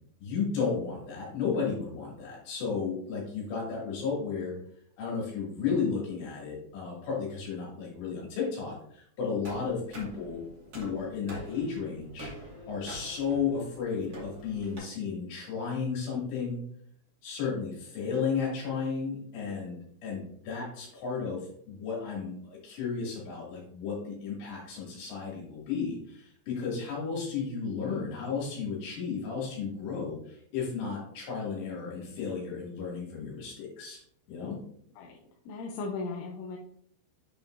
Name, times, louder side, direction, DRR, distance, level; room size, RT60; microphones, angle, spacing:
voice 1, 0.2-4.6 5.0-10.4 10.7-12.3 12.7-16.6 17.2-34.0 34.3-34.6, left 5 dB, 60° left, -4 dB, 4.5 m, -33 dB
sound 1, 9.4-14.8, right 1 dB, 75° right, 0.8 m, -46 dB
voice 2, 35.5-36.6, left 4 dB, 80° left, -1 dB, 3.1 m, -36 dB
8.5 x 5.7 x 2.7 m, 0.66 s
omnidirectional pair, 5.9 m